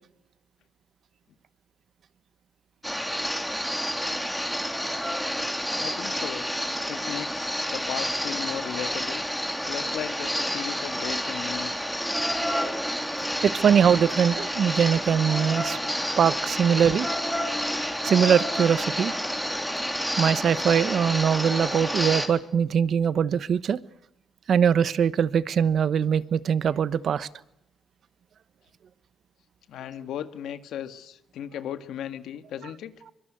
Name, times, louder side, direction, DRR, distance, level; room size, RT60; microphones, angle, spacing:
sound 1, 2.8-22.3, equal, ahead, 3.7 m, -29 dB
voice 1, 5.8-6.5 6.9-9.2 9.7-11.9 29.7-32.9, left 10 dB, 80° left, 10 dB, 1.8 m, -36 dB
voice 2, 13.4-15.8 16.2-17.1 18.0-19.1 20.2-23.8 24.5-27.3, right 7 dB, 60° right, 16 dB, 1.1 m, -22 dB
24.5 x 22.5 x 9.3 m, 0.82 s
cardioid pair, 90°, 0 cm